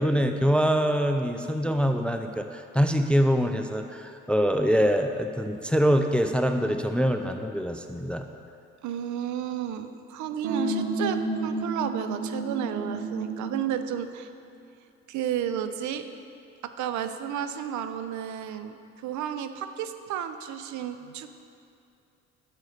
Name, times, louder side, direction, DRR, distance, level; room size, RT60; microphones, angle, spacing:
voice 1, 0.0-8.3, equal, 5° left, 6 dB, 0.4 m, -24 dB
voice 2, 8.8-14.3 15.1-16.0 16.6-21.3, right 9 dB, 60° right, 10 dB, 0.5 m, -32 dB
sound 1, 10.4-13.6, right 2 dB, 85° right, 1.0 m, -30 dB
9.1 x 6.6 x 3.2 m, 2.6 s
hypercardioid pair, 55°, 33 cm